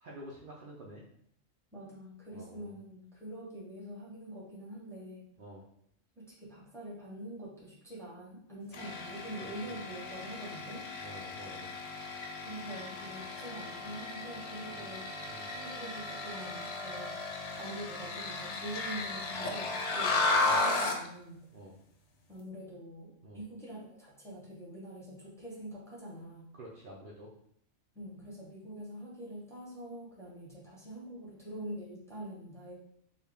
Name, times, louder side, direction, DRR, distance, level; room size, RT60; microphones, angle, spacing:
voice 1, 0.0-1.0 2.3-2.7 5.4-5.6 9.4-9.7 11.0-11.7 14.7-14.8 15.3-15.5 20.4-20.6 21.5-21.7 23.2-23.4 26.5-27.3, right 1 dB, 55° right, -4 dB, 0.6 m, -49 dB
voice 2, 1.7-5.3 6.2-10.8 12.4-15.2 15.5-21.5 22.3-26.5 27.9-32.7, right 1 dB, ahead, -7 dB, 0.9 m, -45 dB
sound 1, 8.7-21.1, left 3 dB, 70° left, 0.9 m, -35 dB
3.9 x 2.3 x 3.4 m, 0.71 s
omnidirectional pair, 1.3 m